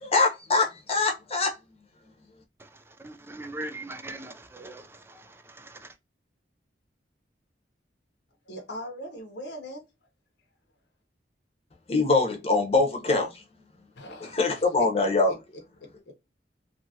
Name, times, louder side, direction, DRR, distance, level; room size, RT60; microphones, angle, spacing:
voice 1, 0.0-1.5 11.9-13.4 14.3-15.3, left 3 dB, 35° left, 0.9 m, -23 dB
voice 2, 2.6-6.0, right 2 dB, 15° right, 0.4 m, -41 dB
voice 3, 8.5-9.8 14.0-14.4 15.3-15.4 15.8-16.1, equal, 75° left, 0.8 m, -40 dB
2.8 x 2.5 x 2.7 m
head